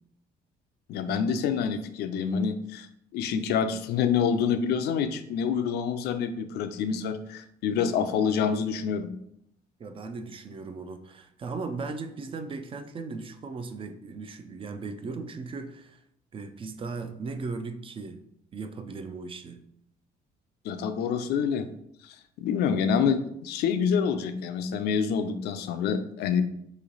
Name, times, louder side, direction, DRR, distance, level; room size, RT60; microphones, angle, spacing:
voice 1, 0.9-2.9 3.1-9.1 20.6-21.7 22.0-26.4, left 7 dB, 75° left, 9 dB, 0.4 m, -27 dB
voice 2, 9.8-16.0 16.3-18.2 18.5-19.6, right 4 dB, 30° right, 9 dB, 0.4 m, -37 dB
3.1 x 2.8 x 3.9 m, 0.74 s
cardioid pair, 110°, 17 cm